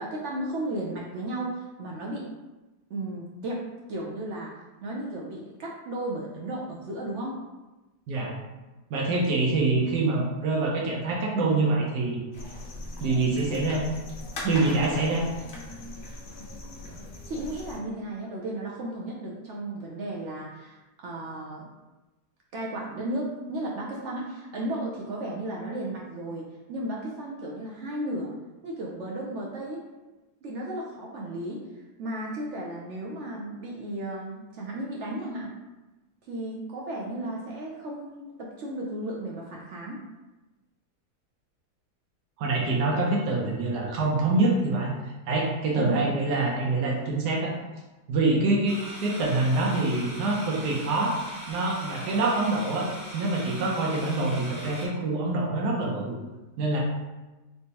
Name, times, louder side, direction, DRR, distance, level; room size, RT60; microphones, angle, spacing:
voice 1, 0.0-2.3 2.9-4.5 4.8-7.4 17.3-21.6 22.5-28.3 28.6-29.8 30.4-31.6 32.0-35.5 36.3-40.0 45.8-46.1, right 1 dB, 70° right, -3 dB, 0.7 m, -34 dB
voice 2, 8.9-12.2 13.0-13.9 14.4-15.3 42.4-44.9 45.3-47.5 48.1-51.2 51.5-56.2 56.6-56.8, right 2 dB, 90° right, -2 dB, 1.2 m, -25 dB
sound 1, 12.3-17.8, left 1 dB, 65° left, 0.5 m, -40 dB
sound 2, 48.7-54.9, right 1 dB, 35° right, 0.9 m, -41 dB
3.3 x 3.0 x 2.8 m, 1.1 s
omnidirectional pair, 1.7 m